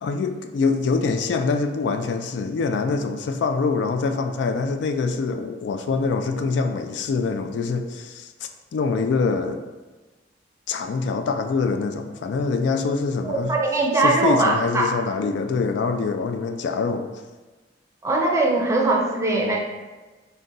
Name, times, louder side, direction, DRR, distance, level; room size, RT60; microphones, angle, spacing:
voice 1, 0.0-9.6 10.7-13.5 14.0-17.1, left 4 dB, 70° left, 7 dB, 0.3 m, -24 dB
voice 2, 13.2-14.9 18.0-19.6, right 2 dB, 15° right, -1 dB, 0.5 m, -21 dB
3.9 x 2.2 x 3.7 m, 1.2 s
head